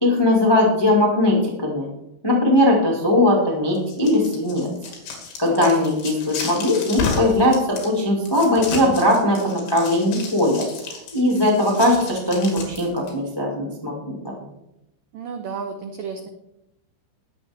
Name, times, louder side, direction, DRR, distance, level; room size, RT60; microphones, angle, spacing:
voice 1, 0.0-1.9 2.2-4.7 5.4-14.3, left 1 dB, 40° left, -2 dB, 0.3 m, -19 dB
sound 1, 3.8-13.1, left 4 dB, 70° left, 4.6 m, -32 dB
voice 2, 15.1-16.3, right 6 dB, 85° right, 5 dB, 1.9 m, -32 dB
20.5 x 7.5 x 3.6 m, 0.87 s
omnidirectional pair, 5.3 m